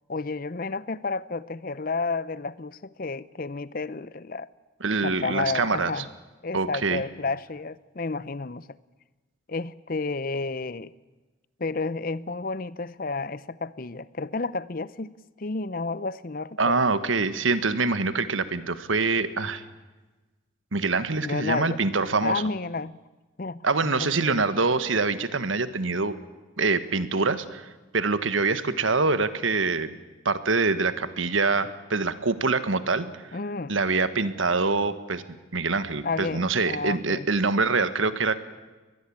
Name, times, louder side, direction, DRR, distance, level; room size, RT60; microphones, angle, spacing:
voice 1, 0.1-4.5 5.0-6.1 6.4-8.7 9.5-10.9 11.6-16.9 21.1-21.8 22.2-22.9 23.4-23.6 24.0-24.4 33.3-33.8 36.0-37.2, left 3 dB, 45° left, 18 dB, 0.7 m, -31 dB
voice 2, 4.8-6.0 6.5-7.0 16.6-19.6 20.7-22.4 23.6-26.1 26.6-27.7 27.9-29.9 30.2-33.4 33.7-35.2 35.5-38.4, right 3 dB, 85° right, 12 dB, 1.5 m, -25 dB
23.0 x 20.5 x 8.7 m, 1.2 s
head